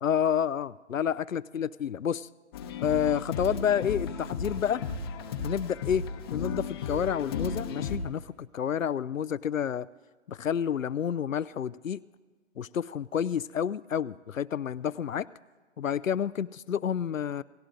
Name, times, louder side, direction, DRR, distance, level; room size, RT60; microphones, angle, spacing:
voice 1, 0.0-2.3 2.8-4.8 5.4-9.9 10.3-12.0 12.6-15.3 15.8-17.4, left 8 dB, 85° left, 18 dB, 0.5 m, -29 dB
sound 1, 2.5-8.0, left 5 dB, 20° left, 0.8 m, -34 dB
29.0 x 17.5 x 2.6 m, 1.4 s
figure-of-eight pair, 145°, 38 cm